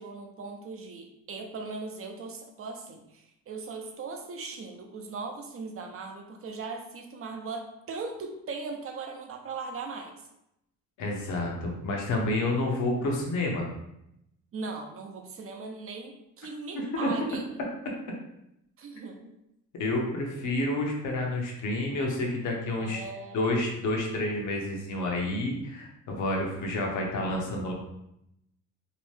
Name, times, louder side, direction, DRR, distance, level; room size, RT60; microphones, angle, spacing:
voice 1, 0.0-10.1 14.5-17.4 18.8-19.3 22.8-23.5, right 4 dB, 45° right, 3 dB, 0.6 m, -39 dB
voice 2, 11.0-13.7 16.7-17.1 19.8-23.0 23.3-27.7, left 2 dB, 75° left, 0 dB, 0.8 m, -29 dB
2.8 x 2.1 x 3.2 m, 0.82 s
cardioid pair, 90°, 30 cm